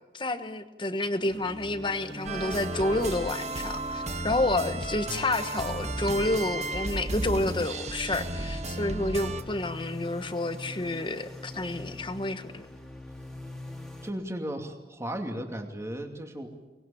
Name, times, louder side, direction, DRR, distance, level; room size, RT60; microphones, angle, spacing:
voice 1, 0.1-12.7, left 2 dB, 25° left, 9 dB, 1.3 m, -29 dB
sound 1, 1.2-14.1, left 1 dB, ahead, 2.6 m, -43 dB
sound 2, 2.3-9.4, right 2 dB, 40° right, 1.5 m, -34 dB
voice 2, 14.0-16.7, right 1 dB, 15° right, 3 dB, 2.5 m, -35 dB
24.0 x 20.5 x 8.7 m, 1.2 s
head